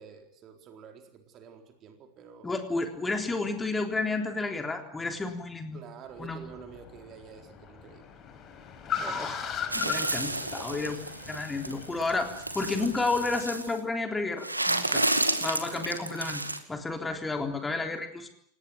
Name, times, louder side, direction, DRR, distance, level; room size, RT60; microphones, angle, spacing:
voice 1, 0.0-2.5 5.7-8.1 10.1-10.8, right 6 dB, 30° right, 5 dB, 4.1 m, -49 dB
voice 2, 2.4-5.8 6.2-6.5 9.0-11.0 11.3-15.0 15.4-16.4 16.7-18.3, left 3 dB, 10° left, 5 dB, 3.8 m, -31 dB
Car, 6.1-13.5, left 7 dB, 30° left, 5.1 m, -39 dB
sound 1, 9.7-13.8 14.4-16.6, right 2 dB, 85° right, 2.3 m, -31 dB
28.5 x 18.5 x 9.1 m, 0.66 s
figure-of-eight pair, 90°, 0 cm